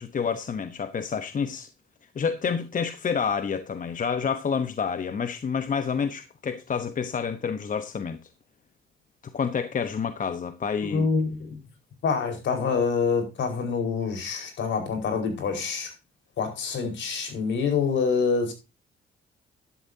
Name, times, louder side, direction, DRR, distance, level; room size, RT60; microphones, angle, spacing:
voice 1, 0.0-1.7 2.1-8.2 9.3-11.1, left 6 dB, 40° left, 1.0 m, -28 dB
voice 2, 10.9-11.6 12.0-15.9 16.4-18.5, left 5 dB, 70° left, 4.8 m, -26 dB
12.5 x 11.5 x 2.8 m
cardioid pair, 90°, 20 cm